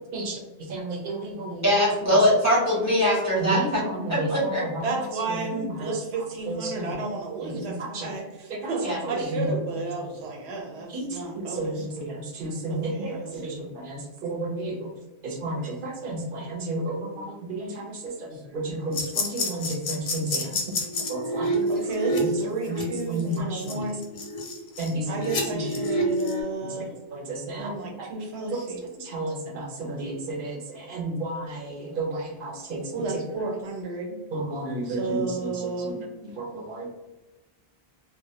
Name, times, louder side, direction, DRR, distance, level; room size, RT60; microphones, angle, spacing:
voice 1, 0.0-2.2 3.4-7.1 7.4-8.1 8.5-9.5 9.9-10.0 10.9-14.9 15.2-20.6 21.0-21.9 22.2-23.8 24.8-25.9 26.7-26.8 27.1-33.2 34.3-36.9, right 1 dB, 60° right, 0 dB, 0.8 m, -33 dB
voice 2, 1.6-3.8 4.1-4.6 8.8-9.0, equal, 20° left, -6 dB, 0.5 m, -22 dB
voice 3, 4.8-8.2 8.7-11.8 12.7-13.6 16.9-17.0 18.4-18.6 21.7-24.0 25.1-26.9 27.6-28.8 32.9-34.2 34.9-36.0, right 3 dB, 90° right, 0 dB, 0.9 m, -32 dB
sound 1, 18.9-26.4, equal, 85° left, 0.9 m, -28 dB
2.2 x 2.0 x 2.7 m, 1.1 s
omnidirectional pair, 1.1 m